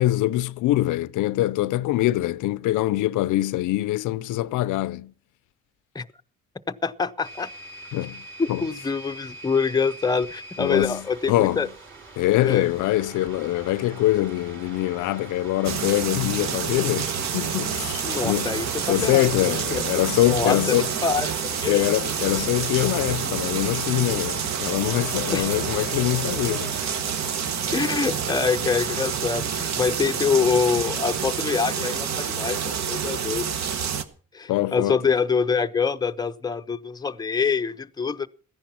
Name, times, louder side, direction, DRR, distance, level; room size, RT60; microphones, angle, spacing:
voice 1, 0.0-5.1 7.9-8.2 8.5-8.6 10.6-11.7 12.2-20.9 21.7-26.7 34.5-35.0, left 15 dB, 80° left, 0.5 m, -24 dB
voice 2, 6.7-7.5 8.4-11.7 12.4-12.7 18.0-19.8 20.3-21.8 25.3-25.5 27.7-33.5 34.3-38.3, left 5 dB, 15° left, 0.6 m, -25 dB
sound 1, 7.2-27.0, right 3 dB, 40° right, 5.8 m, -43 dB
sound 2, 15.6-34.0, right 7 dB, 65° right, 1.2 m, -28 dB
sound 3, 18.4-31.0, right 1 dB, ahead, 1.4 m, -44 dB
14.5 x 10.5 x 5.8 m
cardioid pair, 90°, 30 cm